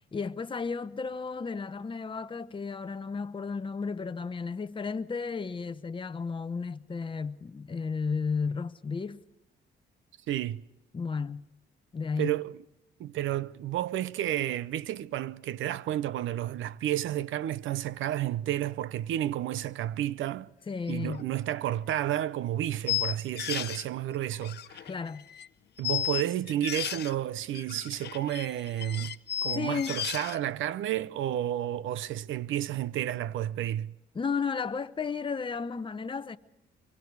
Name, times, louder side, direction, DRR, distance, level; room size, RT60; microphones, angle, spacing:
voice 1, 0.1-9.2 10.9-11.5 11.9-12.3 20.7-21.2 24.8-25.2 29.5-29.9 34.1-36.4, left 5 dB, 25° left, 0.8 m, -33 dB
voice 2, 10.3-10.6 12.2-12.6 13.0-20.5 20.9-24.8 25.8-29.2 29.4-33.9, right 12 dB, 80° right, 0.7 m, -31 dB
sound 1, 21.1-21.2 21.7-21.8 22.9-23.8 24.3-25.5 25.8-27.1 27.5-30.4, left 11 dB, 55° left, 0.7 m, -34 dB
24.0 x 23.5 x 4.7 m
cardioid pair, 90°, 20 cm